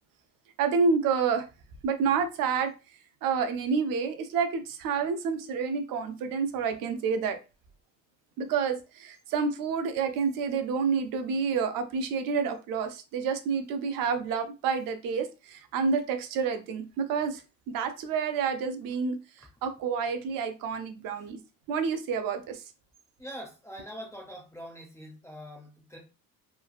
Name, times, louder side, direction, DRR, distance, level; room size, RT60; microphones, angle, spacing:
voice 1, 0.6-1.5 1.8-2.7 3.2-7.4 8.4-17.4 17.7-19.2 19.6-21.4 21.7-22.6, right 5 dB, 65° right, 0.5 m, -29 dB
voice 2, 23.2-26.0, equal, 10° left, 0.4 m, -43 dB
3.1 x 2.3 x 2.4 m
cardioid pair, 180°, 36 cm